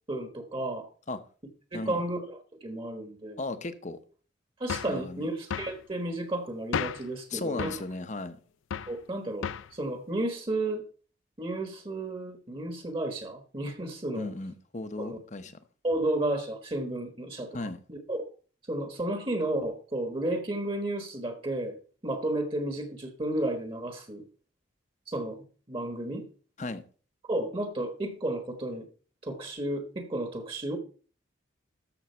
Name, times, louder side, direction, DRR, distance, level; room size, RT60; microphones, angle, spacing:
voice 1, 0.1-0.9 1.7-3.4 4.6-7.7 8.9-10.8 11.4-14.3 15.0-15.2 15.8-17.6 17.9-18.2 18.7-21.8 22.0-24.3 25.1-26.3 27.3-28.9 29.2-30.8, right 1 dB, 25° right, 1.2 m, -32 dB
voice 2, 3.4-4.0 4.9-5.3 7.3-8.4 14.1-15.6 17.5-17.8 26.6-26.8, left 2 dB, 35° left, 0.9 m, -35 dB
sound 1, 4.7-5.0 5.5-5.8 6.7-7.1 7.6-7.9 8.7-9.0 9.4-9.7, left 7 dB, 80° left, 0.4 m, -33 dB
13.0 x 6.2 x 4.4 m
head